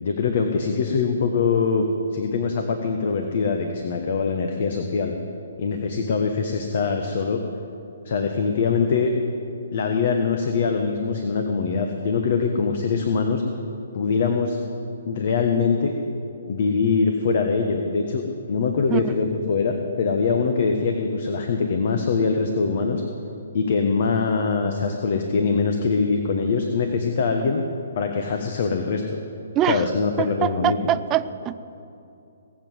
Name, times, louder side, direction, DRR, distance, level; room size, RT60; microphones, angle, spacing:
voice 1, 0.0-1.8 2.1-5.1 5.6-7.4 8.0-9.1 9.7-13.4 13.9-14.6 15.1-15.9 16.5-18.2 18.5-23.0 23.5-27.6 27.9-29.0 29.7-30.8, left 5 dB, 55° left, 4 dB, 1.2 m, -23 dB
voice 2, 29.5-29.9 30.2-31.6, right 11 dB, 20° right, 14 dB, 0.4 m, -24 dB
19.0 x 7.6 x 7.8 m, 2.7 s
hypercardioid pair, 140°, 0 cm